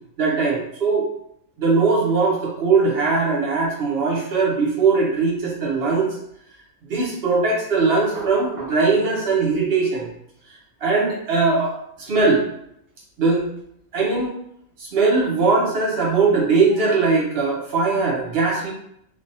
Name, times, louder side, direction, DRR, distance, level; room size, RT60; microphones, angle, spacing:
voice 1, 0.2-1.1 1.6-6.2 6.9-10.1 10.8-12.4 13.2-13.4 13.9-14.3 14.8-18.7, right 4 dB, 50° right, -3 dB, 1.0 m, -20 dB
3.3 x 2.4 x 2.6 m, 0.74 s
omnidirectional pair, 1.4 m